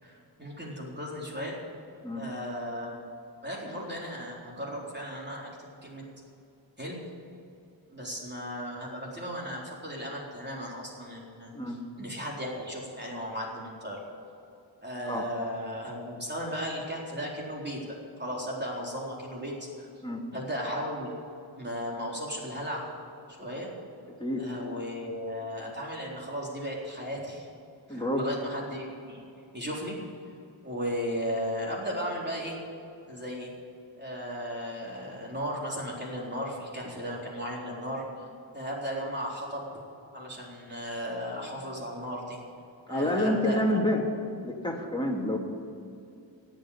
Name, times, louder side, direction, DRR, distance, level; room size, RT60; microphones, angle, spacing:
voice 1, 0.0-1.6 2.1-3.0 3.4-5.5 5.8-6.0 6.8-7.0 7.9-14.0 14.8-17.8 18.2-19.9 20.3-21.1 21.5-22.8 23.4-23.7 24.4-27.5 27.9-29.2 29.5-30.0 30.6-32.6 33.1-33.5 34.0-38.0 38.5-39.7 40.1-42.4 42.9-43.9, equal, 25° right, -3 dB, 4.1 m, -35 dB
voice 2, 27.9-28.3 42.9-44.1 44.4-45.4, left 1 dB, 10° left, 0 dB, 2.6 m, -28 dB
17.0 x 8.1 x 8.7 m, 2.6 s
wide cardioid pair, 60°, 45 cm